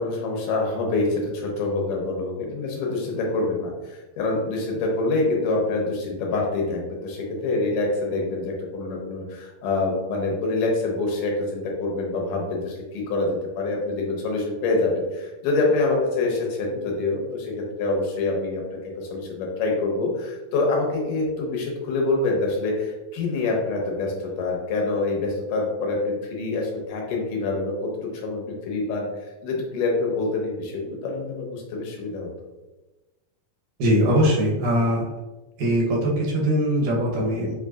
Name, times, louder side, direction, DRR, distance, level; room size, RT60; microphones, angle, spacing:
voice 1, 0.0-32.3, left 3 dB, 90° left, 0 dB, 2.4 m, -26 dB
voice 2, 33.8-35.1 35.6-37.5, equal, 80° right, -2 dB, 2.5 m, -21 dB
6.5 x 2.7 x 2.4 m, 1.1 s
omnidirectional pair, 3.7 m